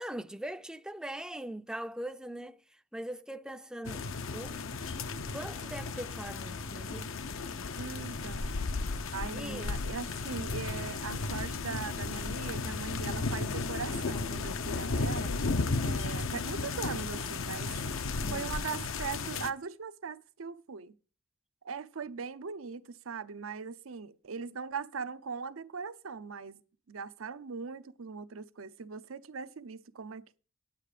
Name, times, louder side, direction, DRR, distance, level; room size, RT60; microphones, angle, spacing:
voice 1, 0.0-2.6 2.9-4.0 4.3-4.7 5.3-7.1 9.3-9.7 18.2-18.6, right 1 dB, 5° right, 0.4 m, -41 dB
sound 1, 3.8-19.5, left 3 dB, 75° left, 0.7 m, -34 dB
voice 2, 7.8-8.6 9.1-15.3 15.8-17.7 18.3-20.9 21.6-26.6 26.9-30.4, right 5 dB, 80° right, 0.7 m, -40 dB
9.3 x 9.1 x 5.0 m
head